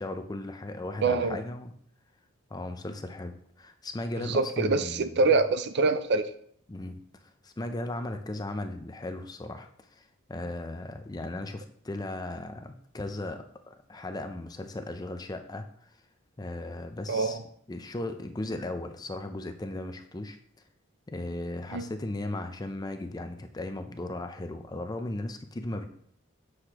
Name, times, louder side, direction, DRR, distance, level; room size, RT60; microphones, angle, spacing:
voice 1, 0.0-1.7 2.5-5.3 6.7-7.0 7.4-15.9 16.4-17.4 17.7-20.4 21.1-25.9, left 2 dB, 20° left, 7 dB, 0.5 m, -37 dB
voice 2, 1.0-1.4 4.2-6.3 17.1-17.4 21.7-21.9, right 3 dB, 55° right, 11 dB, 0.4 m, -25 dB
7.8 x 6.4 x 2.9 m, 0.64 s
head